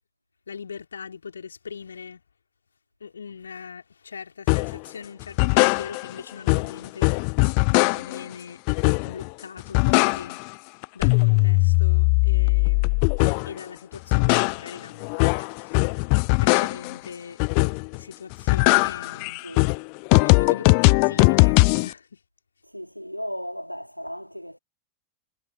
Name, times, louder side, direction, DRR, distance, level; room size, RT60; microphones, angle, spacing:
voice 1, 0.5-2.2 3.0-7.1 7.9-8.6 9.1-10.4 10.9-13.0 13.4-15.8 16.4-17.4 17.9-19.4 20.2-22.2, left 6 dB, 70° left, 3.7 m, -40 dB
sound 1, 4.5-4.8 5.2-6.2 6.5-8.3 8.7-9.3 9.6-10.5 10.8-13.6 13.9-17.0 17.4-18.0 18.3-21.9, left 40 dB or more, 45° left, 0.5 m, -20 dB
voice 2, 19.4-19.7 22.6-24.6, equal, 90° left, 4.4 m, -36 dB
figure-of-eight pair, 90°, 0 cm